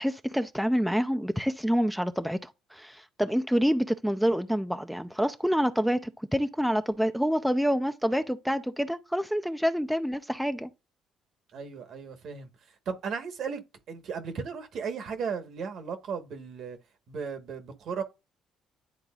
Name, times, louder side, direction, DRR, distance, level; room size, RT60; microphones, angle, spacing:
voice 1, 0.0-10.7, equal, ahead, 0.5 m, -27 dB
voice 2, 11.5-12.5 12.9-13.6 13.9-16.8 17.1-18.0, right 6 dB, 65° right, 1.2 m, -35 dB
10.5 x 3.9 x 2.3 m
cardioid pair, 85°, 0 cm